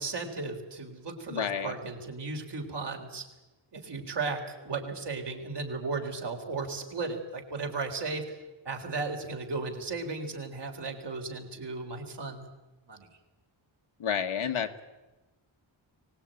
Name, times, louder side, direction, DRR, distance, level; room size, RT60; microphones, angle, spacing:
voice 1, 0.0-3.3 3.7-8.4 8.7-12.5 12.9-13.1, right 3 dB, 55° right, 2 dB, 3.9 m, -35 dB
voice 2, 1.3-1.8 14.0-14.8, left 8 dB, 80° left, 7 dB, 1.7 m, -30 dB
24.0 x 19.5 x 9.2 m, 1.1 s
wide cardioid pair, 170°, 48 cm